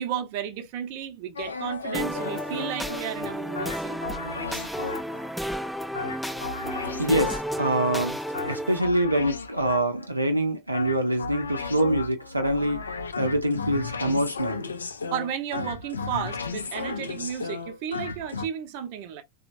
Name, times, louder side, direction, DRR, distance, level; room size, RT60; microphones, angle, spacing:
voice 1, 0.0-4.1 15.1-19.2, right 9 dB, 45° right, 0.7 m, -33 dB
sound 1, 1.4-5.3 5.9-7.7 8.3-10.1 10.7-18.5, left 4 dB, 75° left, 0.4 m, -35 dB
sound 2, 1.9-8.8, equal, ahead, 0.4 m, -32 dB
voice 2, 7.0-8.2 8.5-14.7, right 1 dB, 85° right, 0.5 m, -25 dB
3.0 x 2.1 x 2.5 m
figure-of-eight pair, 90°, 0 cm